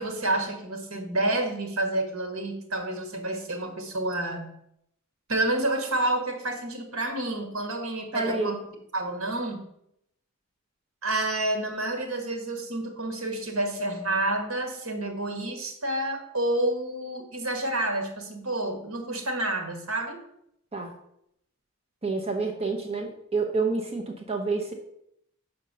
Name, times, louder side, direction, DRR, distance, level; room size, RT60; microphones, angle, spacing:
voice 1, 0.0-4.5 5.3-8.6 8.9-9.7 11.0-20.2, right 1 dB, 75° right, 5 dB, 1.6 m, -29 dB
voice 2, 8.1-8.6 20.7-20.9 22.0-24.7, right 3 dB, 30° right, 3 dB, 0.8 m, -28 dB
6.4 x 4.5 x 6.7 m, 0.76 s
head